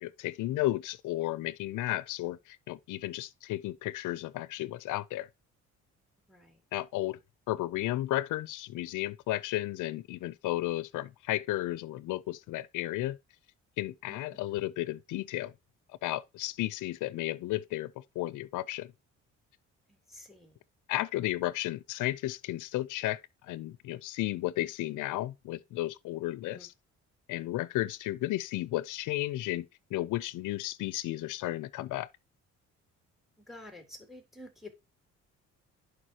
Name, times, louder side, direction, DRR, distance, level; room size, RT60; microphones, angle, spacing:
voice 1, 0.0-5.3 6.7-7.2 7.5-13.2 13.8-15.5 16.0-18.9 20.9-26.7 27.3-29.7 29.9-32.1, left 16 dB, 85° left, 0.6 m, -33 dB
voice 2, 6.3-6.6 14.1-14.2 14.5-14.6 19.9-20.6 26.5-26.7 33.5-34.7, left 1 dB, ahead, 3.6 m, -50 dB
11.0 x 4.9 x 2.8 m
cardioid pair, 90°, 30 cm